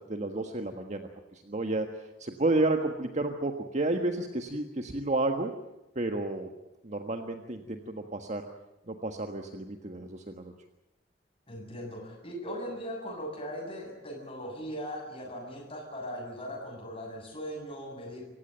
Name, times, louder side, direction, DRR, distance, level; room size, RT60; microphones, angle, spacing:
voice 1, 0.0-5.5 5.9-6.5 6.8-8.4 8.9-10.5, right 2 dB, 40° right, 5 dB, 1.5 m, -31 dB
voice 2, 11.5-18.2, equal, 30° left, -1 dB, 7.6 m, -39 dB
27.0 x 15.5 x 9.2 m, 0.97 s
head